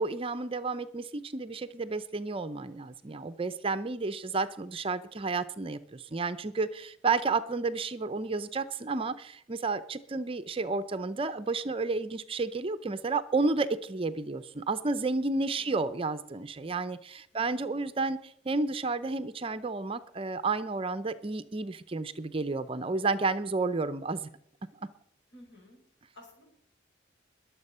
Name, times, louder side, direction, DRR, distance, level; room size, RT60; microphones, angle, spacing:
voice 1, 0.0-24.3, right 3 dB, 30° right, 13 dB, 0.5 m, -31 dB
voice 2, 7.1-7.4 15.4-15.8 17.3-17.7 25.3-25.8 26.1-26.4, left 1 dB, 60° left, 1 dB, 5.1 m, -54 dB
21.5 x 7.4 x 5.5 m, 0.68 s
head